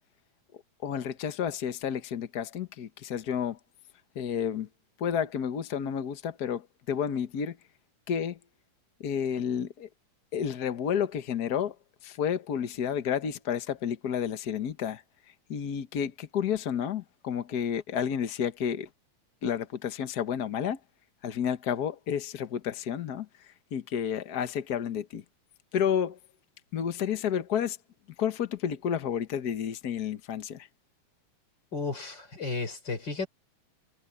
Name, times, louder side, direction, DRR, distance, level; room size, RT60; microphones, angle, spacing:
voice 1, 0.8-3.6 4.1-4.7 5.0-7.6 8.1-8.4 9.0-9.9 10.3-11.7 12.0-15.0 15.5-18.9 19.4-20.8 21.2-23.3 23.7-25.2 25.7-26.2 26.7-27.8 28.2-30.7, left 8 dB, 60° left, 1.0 m, -31 dB
voice 2, 31.7-33.3, left 4 dB, 35° left, 5.3 m, -33 dB
omnidirectional pair, 3.3 m